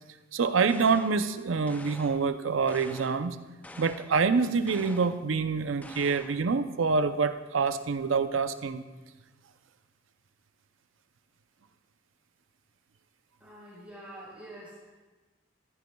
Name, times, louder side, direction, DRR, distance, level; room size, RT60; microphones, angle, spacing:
voice 1, 0.3-3.4 3.8-8.8, right 5 dB, 90° right, 10 dB, 0.6 m, -26 dB
sound 1, 0.7-1.3 1.7-2.3 2.7-3.3 3.6-4.2 4.7-5.2 5.8-6.5, left 1 dB, 10° left, 0.4 m, -47 dB
voice 2, 13.4-14.9, right 1 dB, 5° right, -6 dB, 4.2 m, -46 dB
14.5 x 14.5 x 2.3 m, 1.3 s
head